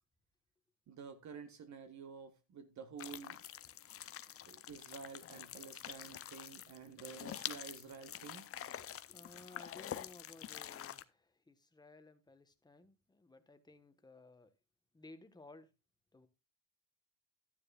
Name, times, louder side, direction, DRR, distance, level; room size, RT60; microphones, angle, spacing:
voice 1, 0.9-3.4 4.5-8.4, right 6 dB, 45° right, 1.5 m, -50 dB
sound 1, 3.0-11.0, left 10 dB, 35° left, 0.6 m, -47 dB
voice 2, 8.8-14.5 14.9-15.7 16.1-16.3, left 2 dB, 10° left, 1.3 m, -58 dB
12.0 x 10.0 x 2.4 m
supercardioid pair, 80°, 39 cm